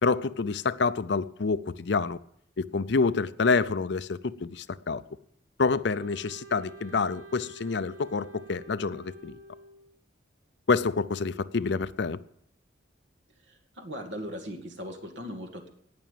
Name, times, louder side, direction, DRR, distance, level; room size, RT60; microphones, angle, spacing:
voice 1, 0.0-2.2 2.6-5.0 5.6-9.4 10.7-12.2, left 4 dB, 65° left, 15 dB, 0.5 m, -27 dB
Wind instrument woodwind instrument, 6.0-10.0, right 2 dB, 90° right, 2.4 m, -48 dB
voice 2, 13.4-15.7, equal, 75° right, 4 dB, 2.2 m, -39 dB
18.0 x 6.0 x 9.2 m, 0.71 s
head